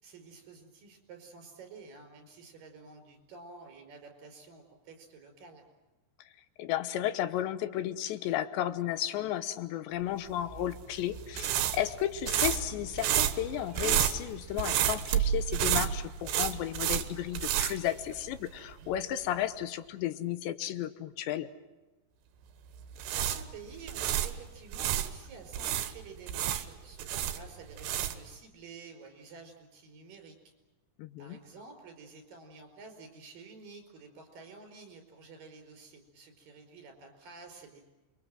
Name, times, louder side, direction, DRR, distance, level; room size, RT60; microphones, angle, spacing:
voice 1, 0.0-5.6 23.0-30.4 31.2-37.9, right 4 dB, 55° right, 4 dB, 6.3 m, -50 dB
voice 2, 6.6-21.5 31.0-31.4, left 12 dB, 85° left, 12 dB, 3.3 m, -33 dB
sound 1, 10.5-18.6 18.8-19.0 22.8-25.1 25.5-28.3, right 11 dB, 80° right, 3.2 m, -30 dB
sound 2, 12.1-17.7, right 1 dB, 10° right, 3.0 m, -54 dB
28.5 x 23.5 x 7.7 m, 1.1 s
omnidirectional pair, 5.0 m